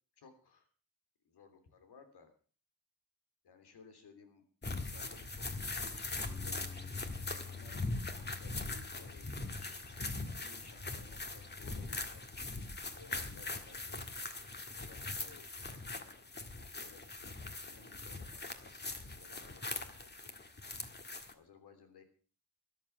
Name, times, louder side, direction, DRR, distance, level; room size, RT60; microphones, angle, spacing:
voice 1, 0.2-0.7 1.2-2.3 3.4-4.4 4.8-6.6 7.5-12.2 12.9-14.0 14.7-16.3 16.6-20.3 21.3-22.0, left 4 dB, 85° left, 7 dB, 3.3 m, -59 dB
sound 1, 4.6-21.3, left 2 dB, 25° left, 1.7 m, -41 dB
Bass guitar, 6.3-12.5, left 6 dB, 5° left, 1.8 m, -51 dB
13.5 x 11.5 x 5.9 m, 0.41 s
cardioid pair, 90°, 38 cm